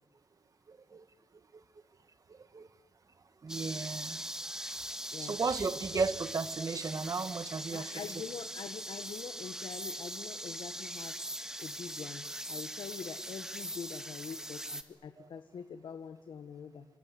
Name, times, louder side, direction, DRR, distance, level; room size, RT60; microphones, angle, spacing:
voice 1, 0.7-1.1 1.5-1.6 2.3-2.7 3.4-4.3 5.2-8.0 15.2-15.3, right 4 dB, 45° right, 12 dB, 1.6 m, -35 dB
sound 1, 3.5-14.8, right 1 dB, 5° right, 1.8 m, -41 dB
voice 2, 7.7-11.2 11.6-16.9, left 7 dB, 85° left, 8 dB, 1.6 m, -44 dB
29.5 x 25.5 x 7.8 m, 1.0 s
wide cardioid pair, 120°, 8 cm